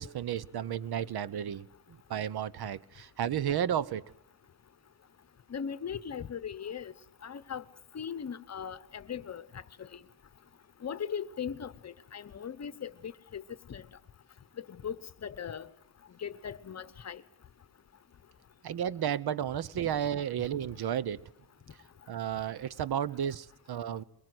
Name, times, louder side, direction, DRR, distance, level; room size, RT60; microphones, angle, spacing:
voice 1, 0.0-1.7 2.1-4.0 18.6-21.2 22.1-24.0, right 9 dB, 70° right, 0.9 m, -32 dB
voice 2, 5.5-6.9 7.2-7.6 7.9-9.4 10.8-13.4 13.7-13.8 14.8-15.0 15.2-15.7 16.2-17.2, left 7 dB, 40° left, 1.0 m, -38 dB
23.0 x 22.5 x 7.9 m
wide cardioid pair, 165°, 39 cm